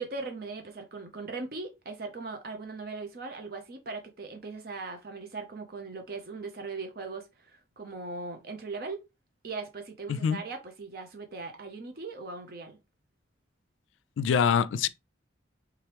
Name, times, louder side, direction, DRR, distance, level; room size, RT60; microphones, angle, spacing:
voice 1, 0.0-9.0 9.4-12.8, right 3 dB, 50° right, 0.6 m, -39 dB
voice 2, 14.2-14.9, left 7 dB, 90° left, 0.3 m, -24 dB
3.5 x 3.0 x 3.3 m
head